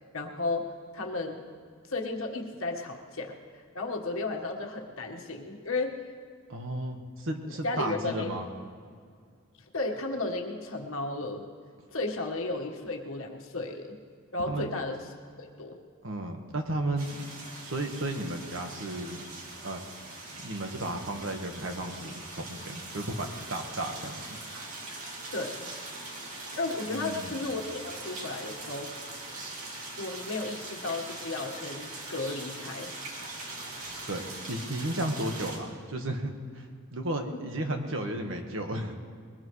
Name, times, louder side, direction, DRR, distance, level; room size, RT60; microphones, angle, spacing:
voice 1, 0.1-0.7 0.9-1.4 1.9-5.9 7.6-8.3 9.7-11.4 11.9-14.0 14.3-15.1 15.4-15.8 25.3-25.7 26.6-28.9 30.0-32.9 37.3-37.4, left 2 dB, 75° left, 1 dB, 1.6 m, -34 dB
voice 2, 6.5-8.5 14.5-14.7 16.0-17.2 17.5-19.2 19.6-19.8 20.4-24.4 26.9-27.3 34.1-38.9, right 1 dB, 70° right, 4 dB, 1.5 m, -34 dB
sound 1, 17.0-35.6, right 2 dB, 90° right, 2.7 m, -42 dB
21.5 x 19.5 x 3.3 m, 2.1 s
head